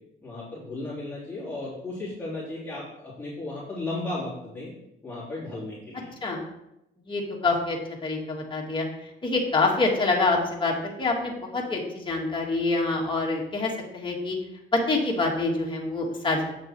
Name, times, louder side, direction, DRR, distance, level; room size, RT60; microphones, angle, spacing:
voice 1, 0.2-4.7 5.0-6.1, left 2 dB, 10° left, -11 dB, 3.9 m, -35 dB
voice 2, 7.1-8.9 9.2-14.4 14.7-16.6, left 3 dB, 25° left, -1 dB, 2.5 m, -26 dB
8.6 x 6.5 x 4.8 m, 0.84 s
cardioid pair, 90°, 20 cm